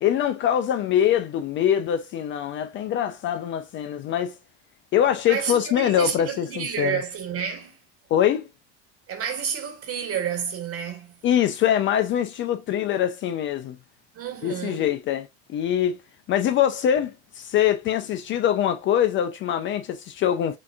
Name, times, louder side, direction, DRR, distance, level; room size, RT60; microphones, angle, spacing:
voice 1, 0.0-4.3 4.9-7.0 8.1-8.5 11.2-13.8 14.4-16.0 16.3-20.6, left 10 dB, 35° left, 0.4 m, -23 dB
voice 2, 5.3-7.8 9.1-11.1 14.1-14.9, right 7 dB, 40° right, 1.3 m, -30 dB
5.1 x 2.7 x 2.3 m
supercardioid pair, 110°, 34 cm